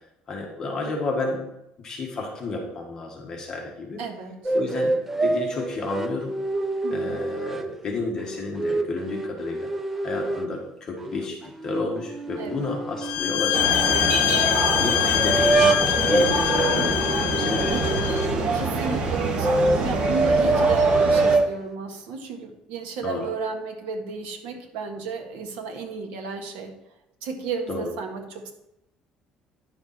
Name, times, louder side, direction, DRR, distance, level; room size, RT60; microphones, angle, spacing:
voice 1, 0.3-1.5 1.8-4.0 4.5-6.3 6.9-9.7 10.0-14.0 14.7-15.8 16.1-18.0 23.0-23.3 27.7-27.9, left 3 dB, 25° left, 0 dB, 1.6 m, -31 dB
voice 2, 4.0-4.5 6.8-7.2 12.4-12.7 17.7-18.2 18.5-26.7 27.2-28.5, right 4 dB, 85° right, 3 dB, 1.7 m, -33 dB
sound 1, 4.4-7.7 8.2-10.5 11.0-14.1 15.2-18.5 19.1-21.5, right 2 dB, 10° right, 0.5 m, -25 dB
sound 2, 13.0-18.3, left 12 dB, 65° left, 1.0 m, -24 dB
sound 3, 13.5-21.4, right 3 dB, 40° right, 1.4 m, -26 dB
10.5 x 7.1 x 4.3 m, 0.84 s
cardioid pair, 175°, 2 cm